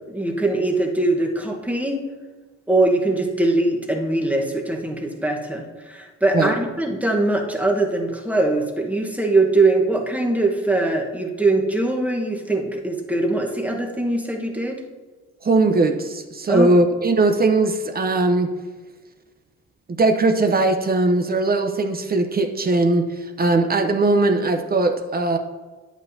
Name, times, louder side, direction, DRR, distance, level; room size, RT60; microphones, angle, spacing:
voice 1, 0.0-2.0 2.7-14.8 16.5-16.7, right 2 dB, 5° right, 1 dB, 1.2 m, -22 dB
voice 2, 15.4-18.5 20.0-23.1 23.4-25.4, right 2 dB, 30° right, 5 dB, 0.7 m, -19 dB
9.6 x 8.2 x 2.7 m, 1.3 s
cardioid pair, 90°, 30 cm